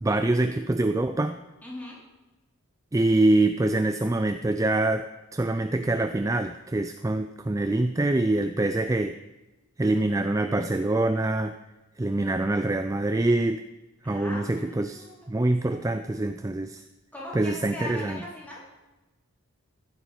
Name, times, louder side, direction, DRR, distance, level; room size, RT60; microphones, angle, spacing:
voice 1, 0.0-1.4 2.9-5.1 5.3-9.2 9.8-11.5 12.0-13.6 14.0-16.8 17.3-18.2, right 2 dB, 15° right, 9 dB, 0.3 m, -25 dB
voice 2, 1.6-2.0 14.0-16.0 17.1-18.6, left 1 dB, 10° left, -6 dB, 4.3 m, -41 dB
15.0 x 11.5 x 4.4 m, 1.1 s
head